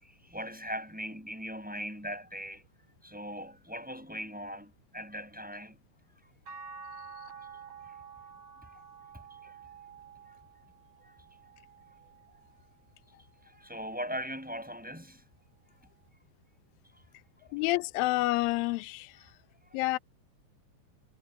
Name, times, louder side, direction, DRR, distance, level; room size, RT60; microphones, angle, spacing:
voice 1, 0.0-2.7 3.0-5.8 6.1-6.2 7.8-8.0 8.6-8.8 9.3-9.6 10.3-10.4 11.0-11.1 13.5-15.2 16.9-17.0 19.7-19.8, equal, ahead, 6.3 m, -40 dB
sound 1, 6.5-12.8 13.3-14.7 16.1-16.2, right 5 dB, 40° right, 8.4 m, -50 dB
voice 2, 17.5-19.2 19.7-20.0, left 19 dB, 80° left, 2.1 m, -29 dB
omnidirectional pair, 5.1 m